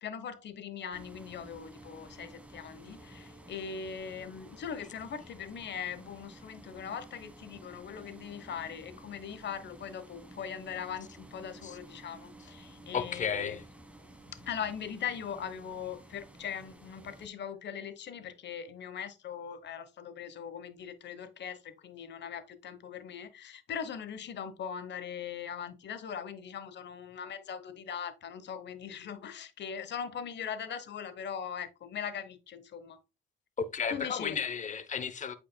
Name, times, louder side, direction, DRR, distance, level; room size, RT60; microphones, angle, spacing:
voice 1, 0.0-13.6 14.3-33.0 33.9-34.4, left 7 dB, 60° left, 1.2 m, -40 dB
sound 1, 0.9-17.3, right 1 dB, 5° right, 1.4 m, -52 dB
voice 2, 12.9-13.6 33.6-35.3, left 6 dB, 40° left, 0.9 m, -33 dB
8.7 x 5.1 x 2.3 m
cardioid pair, 90°, 20 cm